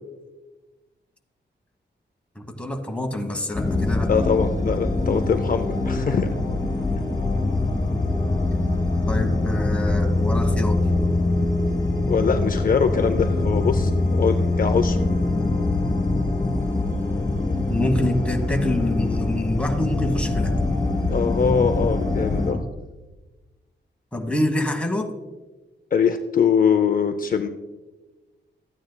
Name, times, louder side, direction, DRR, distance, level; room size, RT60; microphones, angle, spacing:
voice 1, 2.3-4.1 9.1-10.8 17.7-20.5 24.1-25.1, left 1 dB, 5° left, 3 dB, 1.1 m, -26 dB
sound 1, 3.5-22.5, left 2 dB, 20° left, 2.2 m, -23 dB
voice 2, 4.1-6.3 12.1-15.0 21.1-22.6 25.9-27.5, left 6 dB, 50° left, 8 dB, 0.5 m, -22 dB
13.0 x 9.2 x 2.2 m, 1.2 s
wide cardioid pair, 125°, 19 cm